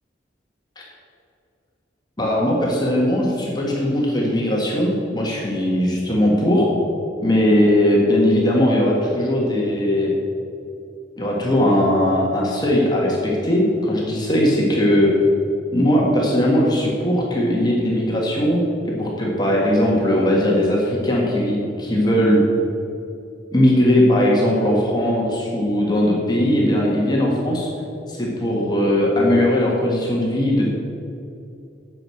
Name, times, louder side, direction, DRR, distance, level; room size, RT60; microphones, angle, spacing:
voice 1, 2.2-6.7 7.2-10.1 11.2-15.1 15.7-18.6 18.8-22.4 23.5-27.7 28.1-30.7, left 1 dB, 25° left, -3 dB, 1.6 m, -19 dB
9.0 x 6.2 x 7.6 m, 2.6 s
head